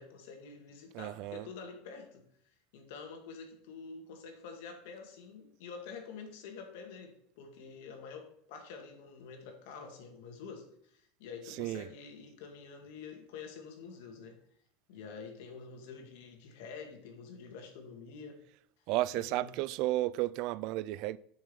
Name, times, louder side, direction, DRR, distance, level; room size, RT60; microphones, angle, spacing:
voice 1, 0.0-2.2 2.7-14.4 14.9-18.4 19.2-19.6, left 5 dB, 75° left, 2.1 m, -47 dB
voice 2, 0.9-1.5 11.4-11.9 18.9-21.2, right 16 dB, 60° right, 0.4 m, -33 dB
6.7 x 6.5 x 7.0 m
supercardioid pair, 130°, 0 cm